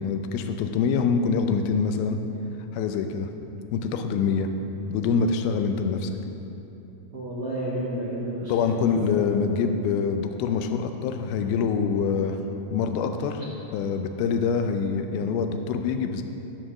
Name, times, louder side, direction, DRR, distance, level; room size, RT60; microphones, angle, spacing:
voice 1, 0.0-2.2 2.7-3.3 3.7-4.5 4.9-6.2 8.5-12.4 12.7-13.4 13.7-16.2, left 5 dB, 80° left, 7 dB, 2.4 m, -25 dB
voice 2, 7.1-9.3, right 1 dB, 70° right, -8 dB, 1.3 m, -31 dB
13.0 x 5.0 x 6.2 m, 3.0 s
omnidirectional pair, 4.6 m